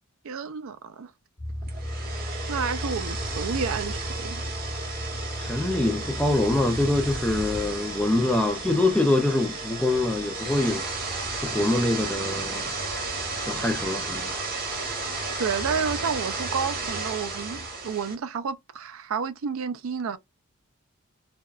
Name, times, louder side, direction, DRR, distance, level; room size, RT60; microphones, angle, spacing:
voice 1, 0.2-1.1 2.5-4.4 15.4-20.2, right 6 dB, 65° right, 0.4 m, -30 dB
sound 1, 1.4-7.4, equal, 40° left, 1.3 m, -35 dB
sound 2, 1.6-18.1, right 3 dB, 40° right, 1.0 m, -33 dB
voice 2, 5.4-10.8 11.4-12.7 13.4-14.3, left 2 dB, 5° left, 0.4 m, -24 dB
3.4 x 2.2 x 2.3 m
head